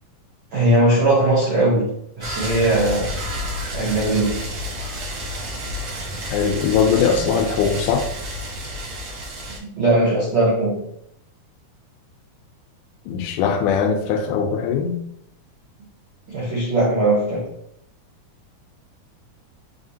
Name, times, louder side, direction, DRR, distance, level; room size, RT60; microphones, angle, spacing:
voice 1, 0.5-3.2 3.7-4.4 9.6-10.8 16.3-17.5, right 1 dB, 85° right, -6 dB, 1.1 m, -19 dB
sound 1, 2.2-9.6, equal, 65° right, 1.3 m, -30 dB
voice 2, 6.3-8.1 13.1-15.0, left 6 dB, 80° left, 5 dB, 2.0 m, -20 dB
4.9 x 3.1 x 2.7 m, 0.73 s
omnidirectional pair, 3.8 m